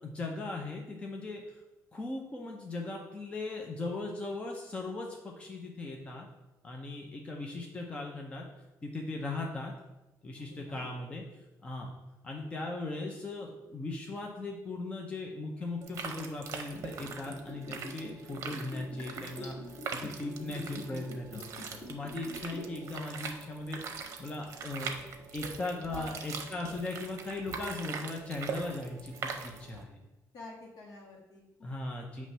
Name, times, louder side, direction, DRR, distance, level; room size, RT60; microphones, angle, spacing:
voice 1, 0.0-1.6 1.9-6.3 6.6-8.5 8.8-9.7 10.2-11.2 11.6-11.9 12.2-19.6 19.9-25.0 25.3-30.0 31.6-32.3, left 2 dB, 20° left, 0 dB, 0.5 m, -38 dB
voice 2, 10.4-10.9 25.4-25.5 25.9-26.2 30.3-31.7, left 1 dB, 65° left, -2 dB, 1.7 m, -48 dB
sound 1, 15.8-29.8, right 5 dB, 50° right, 0.7 m, -42 dB
Liquid, 16.7-22.9 23.1-23.2, left 2 dB, 40° left, 1.7 m, -44 dB
7.4 x 3.1 x 5.5 m, 1.0 s
cardioid pair, 175°, 7 cm